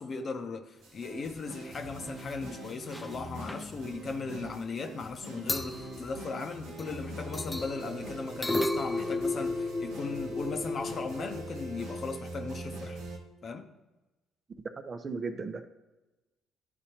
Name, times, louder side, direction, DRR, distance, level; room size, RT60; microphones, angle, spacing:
voice 1, 0.0-13.0 13.4-13.7, left 4 dB, 50° left, 6 dB, 0.8 m, -37 dB
sound 1, 0.8-13.2, right 2 dB, 75° right, 0.9 m, -42 dB
sound 2, 1.6-1.8 2.1-2.3 2.6-3.2 3.5-3.6 5.2-5.3 5.5-7.0 7.3-12.0, left 2 dB, 10° left, 0.5 m, -35 dB
voice 2, 14.9-15.7, right 4 dB, 40° right, 8 dB, 0.7 m, -36 dB
11.5 x 4.3 x 2.9 m, 1.1 s
hypercardioid pair, 55°, 0 cm